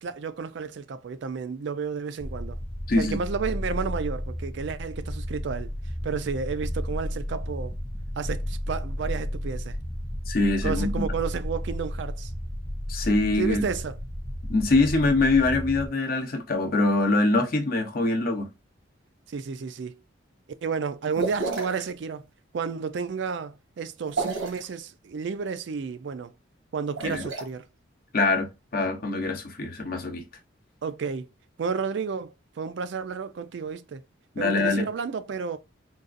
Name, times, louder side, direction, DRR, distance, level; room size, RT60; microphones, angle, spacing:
voice 1, 0.0-2.6 3.0-5.7 6.0-7.7 8.2-9.8 10.6-12.3 13.4-14.0 19.3-20.0 20.6-22.3 22.5-26.3 26.7-27.7 30.8-31.3 31.6-34.0 34.4-35.6, right 5 dB, 60° right, 0.4 m, -31 dB
sound 1, 2.2-15.9, equal, 5° left, 0.4 m, -33 dB
voice 2, 2.9-3.2 10.3-10.9 12.9-13.6 14.5-18.5 27.0-27.2 28.1-30.2 34.4-34.9, left 2 dB, 45° left, 0.7 m, -24 dB
sound 2, 21.1-21.9 24.0-24.7 26.8-27.4, right 3 dB, 85° right, 1.2 m, -31 dB
3.9 x 2.4 x 2.5 m
head